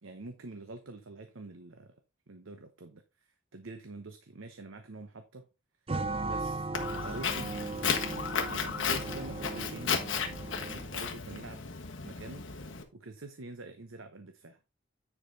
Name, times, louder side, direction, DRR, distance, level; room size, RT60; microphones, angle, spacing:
voice 1, 0.0-2.0 2.3-5.5 6.2-6.7 7.0-7.5 8.5-10.1 10.6-11.7 12.0-12.4 12.9-14.6, right 2 dB, 85° right, 0.9 m, -46 dB
sound 1, 5.9-11.0, right 3 dB, 30° right, 0.5 m, -37 dB
Walk footsteps, 6.7-12.8, left 6 dB, 65° left, 1.5 m, -34 dB
9.9 x 4.9 x 3.9 m
head